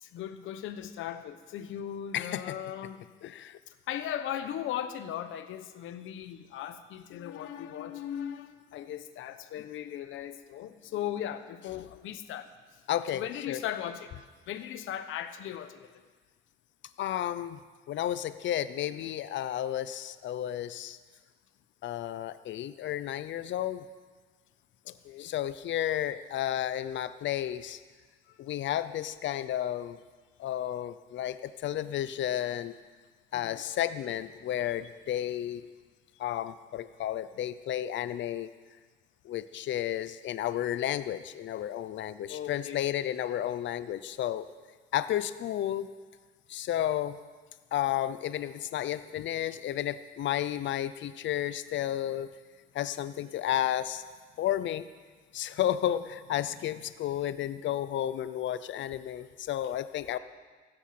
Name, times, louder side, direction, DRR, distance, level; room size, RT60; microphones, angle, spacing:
voice 1, 0.0-3.0 3.7-12.5 13.1-14.1 14.5-16.0 24.8-25.3 28.3-28.4 33.3-33.6 42.3-43.1, left 10 dB, 85° left, 10 dB, 1.0 m, -38 dB
voice 2, 2.1-2.6 3.2-3.6 12.9-13.6 17.0-21.0 21.8-23.9 25.2-27.8 28.4-30.0 30.4-32.8 33.3-35.7 36.2-38.5 39.2-44.5 44.9-45.9 46.5-47.2 47.7-52.3 52.7-54.0 54.4-54.9 55.3-60.2, left 11 dB, 70° left, 14 dB, 0.7 m, -32 dB
15.0 x 13.5 x 6.0 m, 1.5 s
cardioid pair, 90°, 20 cm